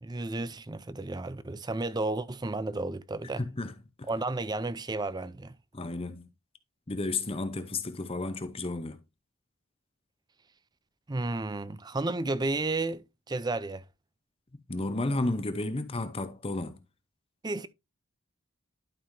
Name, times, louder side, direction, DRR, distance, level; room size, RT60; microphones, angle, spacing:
voice 1, 0.0-3.4 4.1-5.6 11.1-13.8 17.4-17.7, right 2 dB, 20° right, 0.4 m, -32 dB
voice 2, 3.4-4.1 5.7-6.3 6.9-9.0 14.7-16.8, left 2 dB, 25° left, 0.7 m, -32 dB
11.5 x 5.5 x 2.7 m
head